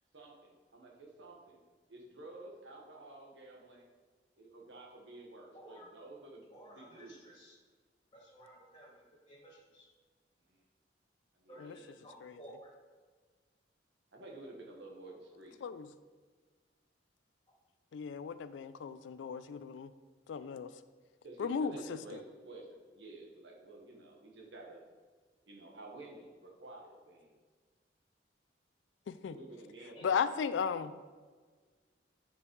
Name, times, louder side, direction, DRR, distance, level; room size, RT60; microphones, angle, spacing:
voice 1, 0.1-1.6 1.9-3.9 4.4-7.2 10.5-10.6 11.4-11.8 14.1-15.6 21.2-24.8 25.5-27.3 29.3-30.2, right 2 dB, 80° right, 0 dB, 1.4 m, -51 dB
voice 2, 5.5-5.9 6.5-7.6 8.1-9.9 11.5-12.7 30.0-30.1, right 1 dB, 25° left, -4 dB, 2.2 m, -55 dB
voice 3, 17.9-19.9 20.3-20.7 21.4-22.0 29.1-29.4 30.0-30.9, left 6 dB, 90° left, 13 dB, 0.3 m, -35 dB
9.7 x 5.2 x 3.2 m, 1.5 s
head